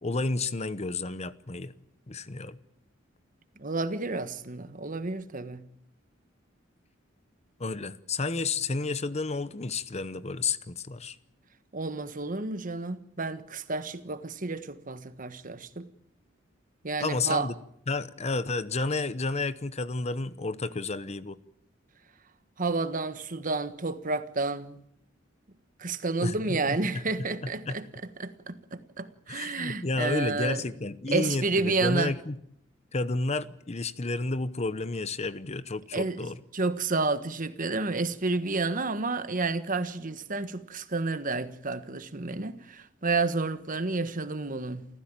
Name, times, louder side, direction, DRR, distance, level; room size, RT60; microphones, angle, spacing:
voice 1, 0.0-1.7 2.1-2.6 7.6-11.2 17.0-17.5 17.9-21.4 26.2-27.8 29.3-32.4 32.9-36.4, left 3 dB, 35° left, 0.9 m, -31 dB
voice 2, 3.6-5.6 11.7-15.9 16.8-17.5 22.6-24.8 25.8-27.9 28.2-30.6 31.1-32.1 35.9-36.3 36.5-44.9, right 3 dB, 45° right, 1.4 m, -30 dB
29.0 x 15.0 x 9.0 m
head